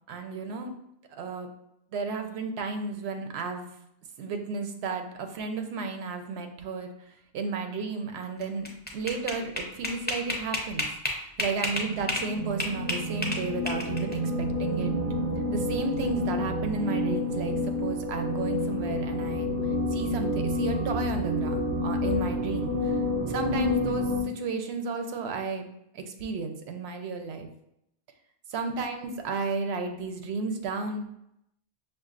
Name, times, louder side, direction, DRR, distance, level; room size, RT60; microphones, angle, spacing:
voice 1, 0.1-0.7 1.1-1.5 1.9-3.7 4.2-6.9 7.3-8.7 8.9-10.9 11.2-14.9 15.5-19.5 19.9-23.0 23.3-25.6 25.9-27.5 28.5-31.2, right 4 dB, 90° right, 5 dB, 0.8 m, -33 dB
sound 1, 8.4-12.3 12.6-14.1, left 1 dB, 15° left, 0.4 m, -30 dB
sound 2, 11.7-24.2, left 1 dB, 50° right, 0.4 m, -29 dB
5.9 x 2.4 x 2.4 m, 0.80 s
omnidirectional pair, 1.0 m